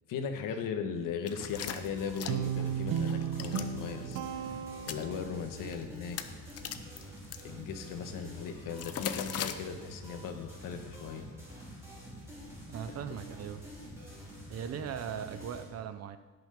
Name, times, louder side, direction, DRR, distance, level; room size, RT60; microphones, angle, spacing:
voice 1, 0.1-4.2 4.8-6.2 7.4-11.2, left 6 dB, 60° left, 6 dB, 1.5 m, -38 dB
sound 1, 1.3-2.6 3.0-3.7 4.0-4.2 4.7-5.0 5.7-5.8 6.1-7.4 8.8-9.5, left 9 dB, 40° left, 0.8 m, -38 dB
sound 2, 1.3-15.6, equal, 5° right, 4.7 m, -47 dB
Guitar, 2.3-5.6, right 8 dB, 65° right, 1.0 m, -34 dB
voice 2, 12.7-13.6 14.5-16.2, right 8 dB, 40° right, 11 dB, 0.7 m, -39 dB
17.0 x 6.4 x 5.1 m, 1.3 s
cardioid pair, 130°, 37 cm